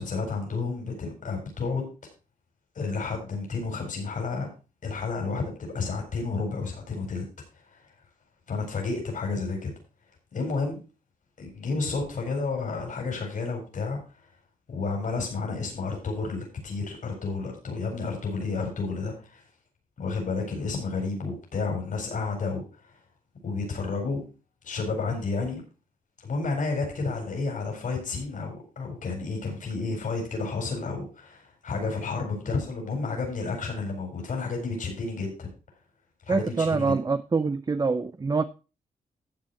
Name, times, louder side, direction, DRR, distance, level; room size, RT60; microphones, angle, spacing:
voice 1, 0.0-1.9 2.7-4.5 4.8-7.3 7.7-7.8 8.5-9.7 10.3-10.8 11.4-14.0 14.7-19.4 20.0-22.6 23.4-24.2 24.6-25.6 26.2-35.5 36.3-37.0, left 4 dB, 60° left, 1 dB, 4.4 m, -31 dB
voice 2, 36.3-38.4, right 4 dB, 25° right, 12 dB, 0.6 m, -25 dB
12.5 x 7.6 x 4.2 m, 0.32 s
cardioid pair, 100°, 15 cm